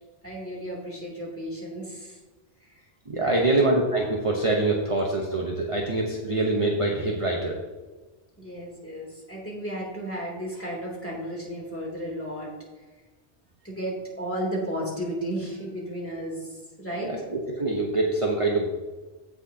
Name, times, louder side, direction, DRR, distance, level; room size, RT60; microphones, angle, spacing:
voice 1, 0.2-2.2 2.6-2.8 3.2-3.5 8.4-12.5 13.6-17.1, equal, 10° left, -4 dB, 2.9 m, -34 dB
voice 2, 3.1-7.6 17.0-17.2 17.5-18.7, right 2 dB, 30° right, 0 dB, 1.0 m, -24 dB
16.0 x 6.2 x 2.8 m, 1.3 s
omnidirectional pair, 1.1 m